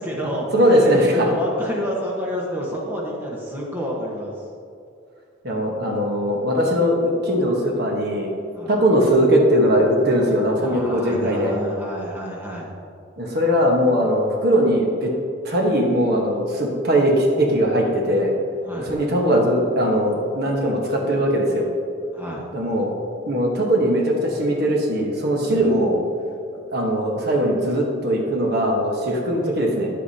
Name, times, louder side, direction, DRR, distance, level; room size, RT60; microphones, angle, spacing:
voice 1, 0.0-4.4 8.5-8.7 10.6-12.7 18.6-18.9 22.1-22.4 25.4-25.7, equal, 10° right, -4 dB, 1.2 m, -29 dB
voice 2, 0.5-1.3 5.4-8.3 8.7-11.5 13.2-15.1 15.4-18.3 18.8-21.7 22.5-22.9 23.3-26.0 26.7-29.9, equal, 50° right, 0 dB, 1.2 m, -20 dB
10.5 x 8.1 x 2.8 m, 2.4 s
head